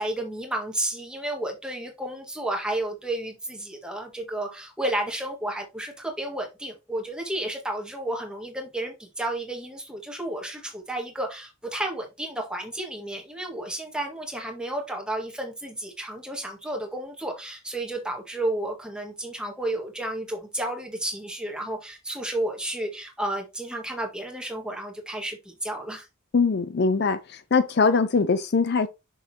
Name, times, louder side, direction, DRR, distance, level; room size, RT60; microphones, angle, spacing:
voice 1, 0.0-26.1, right 1 dB, 5° right, 1.8 m, -32 dB
voice 2, 26.3-28.9, left 4 dB, 50° left, 0.5 m, -22 dB
6.5 x 6.4 x 2.9 m
head